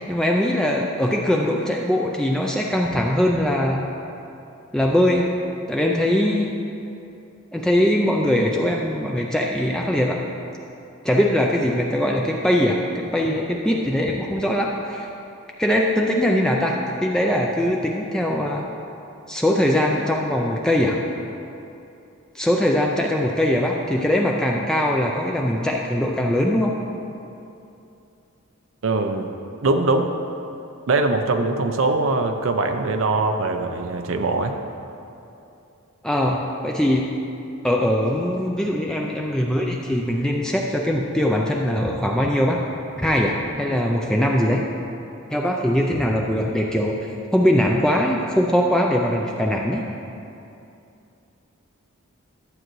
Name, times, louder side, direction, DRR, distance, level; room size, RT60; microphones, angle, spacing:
voice 1, 0.1-3.8 4.7-5.3 5.7-6.5 7.5-10.2 11.0-15.1 15.6-18.7 19.3-21.0 22.3-26.7 36.0-37.1 37.6-42.6 43.0-44.7 45.3-47.0 47.3-49.9, equal, 5° left, -1 dB, 0.4 m, -21 dB
voice 2, 28.8-29.3 29.6-30.1 30.9-34.6, right 3 dB, 65° right, 5 dB, 0.5 m, -22 dB
11.5 x 7.7 x 3.1 m, 2.7 s
head